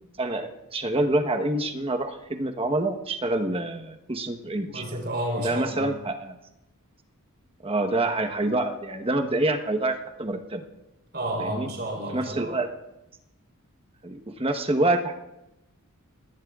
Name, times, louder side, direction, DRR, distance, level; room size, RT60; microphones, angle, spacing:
voice 1, 0.2-4.8 5.4-6.4 7.6-10.6 11.4-11.7 12.1-12.7 14.0-15.1, right 2 dB, 25° right, 6 dB, 1.1 m, -26 dB
voice 2, 4.7-5.9 11.1-12.6, right 1 dB, 50° right, -1 dB, 3.9 m, -31 dB
27.5 x 18.0 x 2.4 m, 0.92 s
head